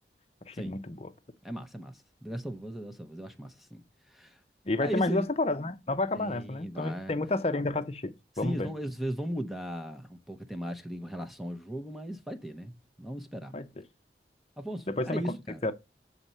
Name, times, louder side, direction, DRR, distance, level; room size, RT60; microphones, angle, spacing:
voice 1, 0.5-1.1 4.6-8.7 13.5-13.7 14.9-15.4 15.6-15.7, left 2 dB, 35° left, 0.7 m, -30 dB
voice 2, 1.4-4.4 4.8-5.3 6.1-7.2 8.4-13.6 14.6-15.6, right 1 dB, ahead, 0.7 m, -37 dB
7.7 x 4.1 x 5.5 m
head